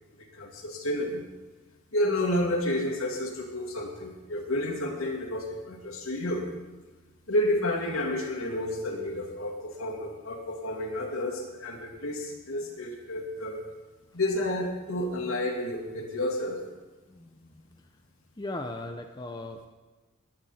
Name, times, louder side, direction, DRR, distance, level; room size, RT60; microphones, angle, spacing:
voice 1, 0.2-1.2 1.9-6.4 7.3-13.6 14.1-16.6, left 1 dB, 70° left, 0 dB, 2.6 m, -30 dB
voice 2, 17.1-17.7 18.4-19.7, left 2 dB, 20° left, 4 dB, 0.6 m, -38 dB
20.5 x 10.5 x 4.3 m, 1.3 s
head